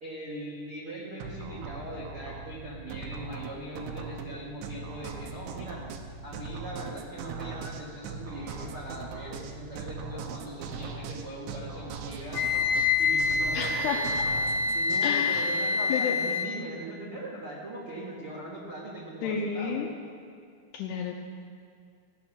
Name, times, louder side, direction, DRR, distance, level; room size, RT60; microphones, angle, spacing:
voice 1, 0.0-5.8 6.2-12.6 13.0-14.1 14.7-19.8, right 1 dB, 60° right, -6 dB, 1.3 m, -40 dB
sound 1, 1.2-15.5, right 4 dB, 80° right, 3.0 m, -40 dB
Wind instrument woodwind instrument, 12.3-16.5, left 4 dB, 60° left, 3.0 m, -26 dB
voice 2, 13.5-14.0 15.0-15.5 15.9-16.2 19.2-19.9 20.7-21.2, left 7 dB, 80° left, 1 dB, 2.5 m, -30 dB
17.5 x 8.2 x 6.1 m, 2.2 s
omnidirectional pair, 5.5 m